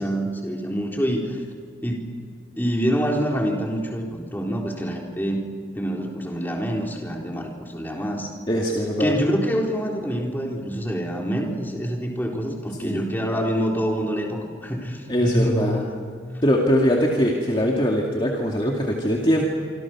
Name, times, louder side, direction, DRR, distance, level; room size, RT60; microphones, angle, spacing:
voice 1, 0.0-1.4 1.8-2.0 2.6-5.4 5.7-8.3 9.0-15.8, equal, 10° left, 0 dB, 3.9 m, -26 dB
voice 2, 8.5-9.1 12.8-13.0 15.1-15.8 16.4-19.4, equal, 25° left, -1 dB, 2.3 m, -21 dB
27.0 x 25.5 x 6.2 m, 2.1 s
head